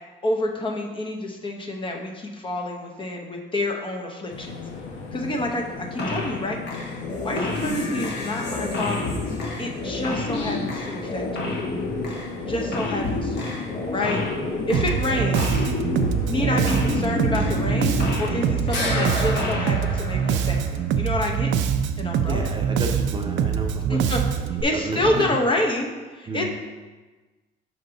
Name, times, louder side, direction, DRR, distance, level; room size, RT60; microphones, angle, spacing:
voice 1, 0.2-4.6 5.1-6.6 7.2-9.2 9.6-11.5 12.5-13.5 13.9-14.2 14.7-15.7 16.3-21.5 22.0-22.5 23.9-24.2 24.6-26.5, left 1 dB, 25° left, 1 dB, 0.7 m, -28 dB
sound 1, 4.3-19.1, left 4 dB, 85° left, 0.9 m, -35 dB
sound 2, 6.0-6.4 6.7-18.4 18.7-20.9, left 2 dB, 60° left, 1.6 m, -29 dB
Bass guitar, 14.7-24.6, right 7 dB, 70° right, 0.5 m, -24 dB
voice 2, 22.2-24.0 24.7-25.2 26.3-26.5, right 2 dB, 25° right, 2 dB, 0.7 m, -31 dB
5.7 x 5.3 x 3.9 m, 1.3 s
cardioid pair, 130°, 20 cm